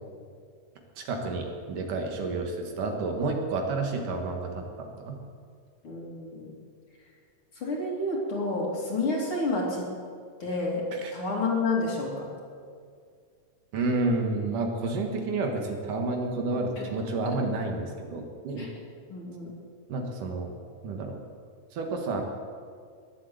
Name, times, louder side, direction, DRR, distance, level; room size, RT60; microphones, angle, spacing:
voice 1, 1.0-5.2 10.9-11.1 13.7-18.7 19.9-20.5 20.8-21.2 21.7-22.2, right 3 dB, 70° right, 2 dB, 3.1 m, -30 dB
voice 2, 5.8-6.5 7.5-9.9 10.4-12.3 16.8-16.9 17.3-17.4 18.6-18.7 19.1-19.6, left 2 dB, 40° left, -2 dB, 3.3 m, -30 dB
20.5 x 8.2 x 7.9 m, 2.1 s
omnidirectional pair, 3.9 m